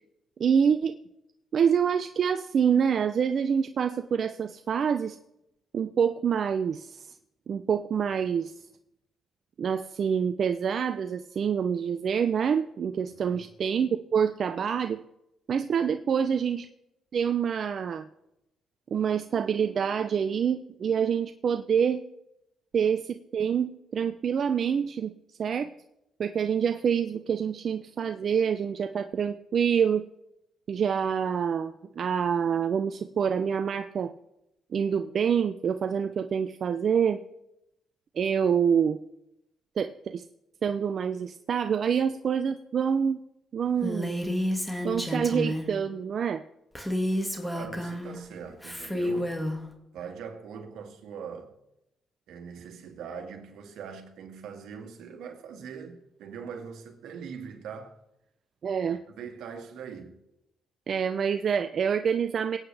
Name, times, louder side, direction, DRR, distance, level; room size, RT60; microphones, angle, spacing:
voice 1, 0.4-1.0 1.5-5.2 5.7-7.1 7.5-8.5 9.6-15.0 15.5-16.7 17.1-18.1 18.9-22.0 22.7-25.1 25.4-25.7 26.2-30.0 30.7-34.1 34.7-37.2 38.2-39.0 39.8-40.2 40.6-43.2 43.5-44.2 44.8-46.4 58.6-59.0 60.9-62.6, right 7 dB, 55° right, 0.5 m, -26 dB
voice 2, 13.0-13.4 47.4-49.4 49.9-51.5 52.3-58.0 58.8-60.2, right 6 dB, 80° right, 1.9 m, -42 dB
Female speech woman speaking, 43.8-45.7 46.8-48.2 48.6-49.6, equal, 5° left, 2.0 m, -30 dB
23.0 x 8.9 x 3.4 m
cardioid pair, 90°, 0 cm